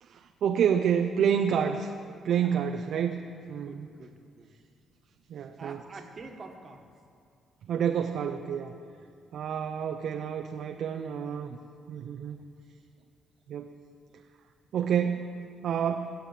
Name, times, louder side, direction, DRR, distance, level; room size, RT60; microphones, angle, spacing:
voice 1, 0.0-1.9 2.2-3.2 3.5-3.9 5.3-5.8 7.7-8.7 9.3-11.6 11.9-12.4 13.5-13.7 14.7-15.3 15.6-16.1, right 8 dB, 70° right, 5 dB, 0.6 m, -28 dB
voice 2, 2.2-2.6 3.3-4.5 5.6-6.9 9.0-9.2, right 3 dB, 40° right, 3 dB, 1.5 m, -47 dB
12.0 x 7.5 x 8.4 m, 2.4 s
cardioid pair, 90°, 0 cm